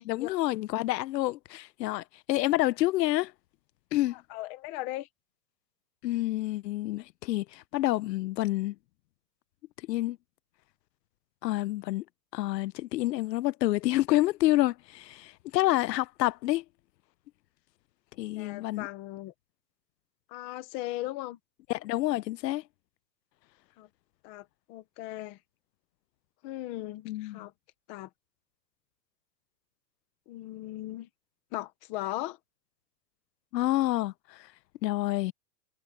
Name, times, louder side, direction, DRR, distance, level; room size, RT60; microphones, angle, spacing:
voice 1, 0.0-3.3 3.9-4.2 6.0-8.8 9.9-10.2 11.4-12.0 12.3-16.6 18.2-18.9 21.7-22.6 27.1-27.5 33.5-34.5 34.8-35.3, left 16 dB, 75° left, 0.6 m, -28 dB
voice 2, 4.3-5.1 18.4-19.3 20.3-21.4 23.8-23.9 24.2-25.4 26.4-27.5 27.9-28.1 30.3-31.1 31.5-32.4, left 16 dB, 15° left, 0.5 m, -38 dB
supercardioid pair, 165°, 50 cm